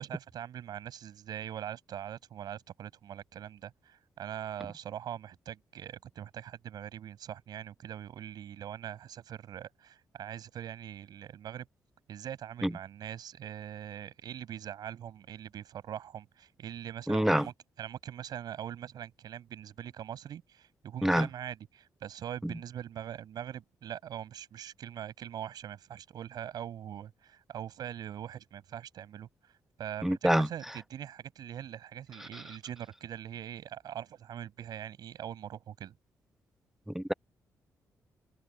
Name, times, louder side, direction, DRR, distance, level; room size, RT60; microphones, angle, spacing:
voice 1, 0.0-11.7 12.1-29.3 29.8-35.9, right 10 dB, 75° right, 7.6 m, -42 dB
voice 2, 17.1-17.5 21.0-21.3 30.0-30.5 32.3-32.4 36.9-37.1, equal, 5° right, 0.5 m, -26 dB
cardioid pair, 70°, 7 cm